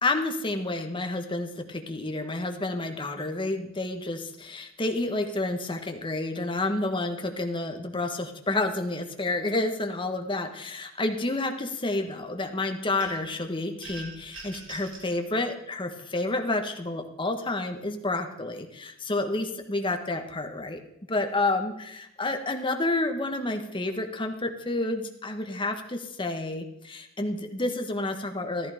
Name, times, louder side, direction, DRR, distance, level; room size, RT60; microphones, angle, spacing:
voice 1, 0.0-20.8 21.1-28.7, left 2 dB, 25° left, 5 dB, 1.4 m, -30 dB
sound 1, 13.0-13.4 13.8-15.1, right 2 dB, 70° right, 3.4 m, -42 dB
14.0 x 13.0 x 5.0 m, 0.79 s
head